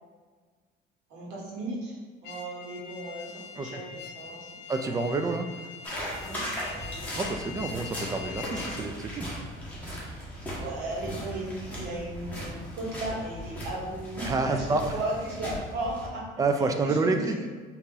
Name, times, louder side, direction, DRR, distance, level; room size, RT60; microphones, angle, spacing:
voice 1, 1.1-5.1 6.2-7.1 8.1-8.9 10.1-14.6 14.9-16.3 16.8-17.4, right 2 dB, 90° right, -4 dB, 1.4 m, -36 dB
sound 1, 2.2-8.9, left 6 dB, 75° left, 0.5 m, -43 dB
voice 2, 4.7-5.7 7.2-9.3 14.2-14.8 16.4-17.3, right 3 dB, 20° right, 6 dB, 0.3 m, -28 dB
sound 2, 5.8-16.1, equal, 10° left, 1.1 m, -38 dB
4.0 x 2.9 x 3.7 m, 1.4 s
cardioid pair, 140°, 18 cm